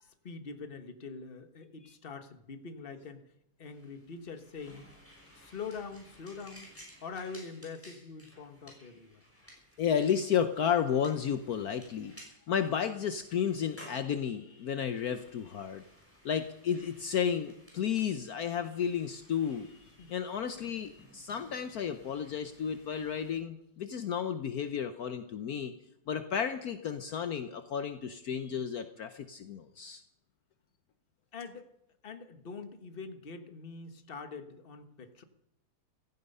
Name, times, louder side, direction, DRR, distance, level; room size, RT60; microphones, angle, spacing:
voice 1, 0.0-3.2 3.6-4.9 5.3-6.7 7.0-9.2 20.0-20.1 31.3-31.7 32.0-35.2, left 5 dB, 35° left, 9 dB, 1.4 m, -44 dB
sound 1, 3.6-23.4, equal, 5° left, 6.0 m, -57 dB
voice 2, 9.8-12.1 12.5-15.8 16.2-19.7 20.1-25.7 26.1-30.0, left 8 dB, 65° left, 10 dB, 1.2 m, -32 dB
16.0 x 15.0 x 5.5 m, 0.79 s
omnidirectional pair, 1.8 m